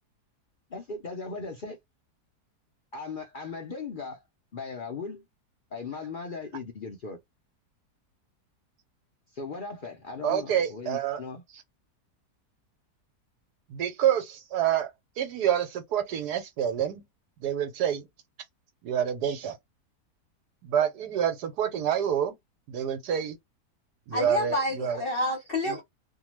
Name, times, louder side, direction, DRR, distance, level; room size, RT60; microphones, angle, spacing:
voice 1, 0.7-1.8 2.9-4.2 4.5-5.2 5.7-7.2 9.3-11.4, left 4 dB, 75° left, 0.4 m, -38 dB
voice 2, 10.2-11.2 13.7-17.0 17.4-18.1 18.8-19.6 20.6-22.3 22.7-23.4 24.1-25.0 25.7-25.8, right 9 dB, 75° right, 1.3 m, -27 dB
voice 3, 24.1-25.8, left 1 dB, 45° left, 0.8 m, -29 dB
2.7 x 2.3 x 3.1 m
omnidirectional pair, 1.8 m